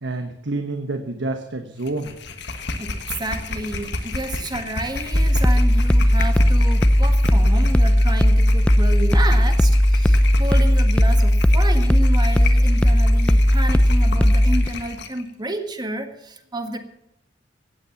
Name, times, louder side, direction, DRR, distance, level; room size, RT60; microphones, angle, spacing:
voice 1, 0.0-2.2, right 2 dB, 80° right, 6 dB, 1.2 m, -28 dB
sound 1, 1.8-15.2, left 3 dB, 65° left, 1.5 m, -32 dB
voice 2, 2.8-16.8, right 1 dB, 25° right, 6 dB, 1.6 m, -30 dB
sound 2, 5.1-14.7, equal, 5° left, 0.5 m, -16 dB
16.5 x 8.8 x 7.1 m, 0.83 s
head